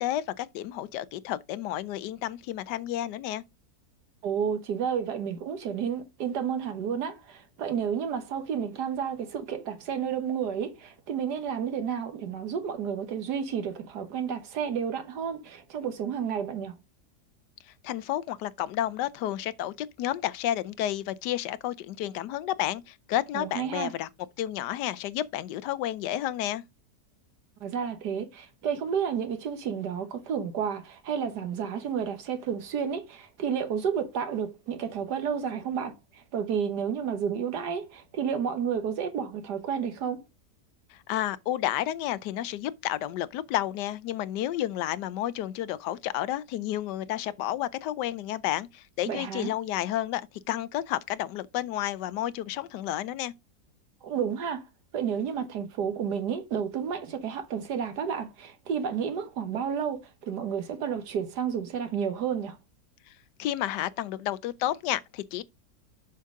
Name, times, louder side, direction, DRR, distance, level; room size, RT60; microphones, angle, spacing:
voice 1, 0.0-3.4 17.8-24.1 24.4-26.6 40.9-50.2 50.5-53.3 63.4-65.4, left 13 dB, 85° left, 1.2 m, -31 dB
voice 2, 4.2-16.8 23.3-23.9 27.6-40.2 49.1-49.5 54.0-54.7 54.9-62.6, right 7 dB, 75° right, 1.7 m, -31 dB
7.2 x 5.9 x 3.6 m
omnidirectional pair, 1.8 m